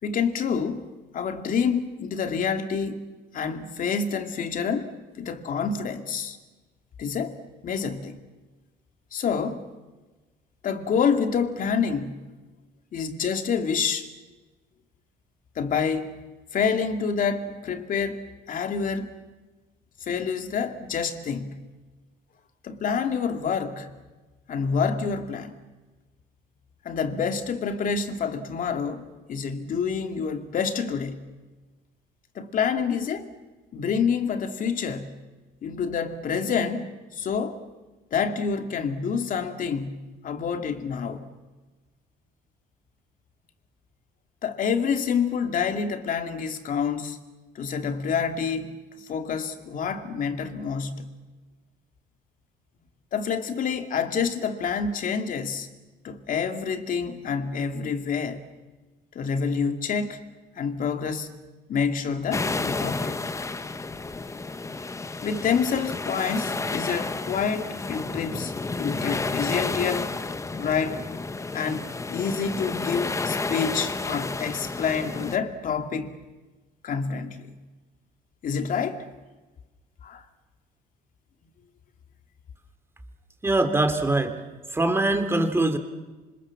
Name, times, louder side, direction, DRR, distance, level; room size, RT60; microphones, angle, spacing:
voice 1, 0.0-3.0 3.3-6.4 7.0-7.4 7.6-8.2 9.1-9.7 10.6-12.2 12.9-14.1 15.5-16.1 16.5-19.2 20.0-21.6 22.6-23.9 24.5-25.6 26.8-31.2 32.3-33.3 33.7-35.2 35.6-37.6 38.1-41.3 44.4-47.2 47.5-51.1 53.1-55.7 56.0-58.4 59.1-60.2 60.6-61.3 61.7-63.2 65.2-70.2 70.5-71.0 71.5-76.1 76.8-77.5 78.4-79.0 80.0-80.2, left 6 dB, 55° left, 2.7 m, -28 dB
sound 1, 62.3-75.4, left 3 dB, 15° left, 1.1 m, -31 dB
voice 2, 83.4-84.4 84.7-85.8, right 2 dB, 15° right, 3.1 m, -23 dB
27.0 x 25.5 x 7.5 m
cardioid pair, 110°, 17 cm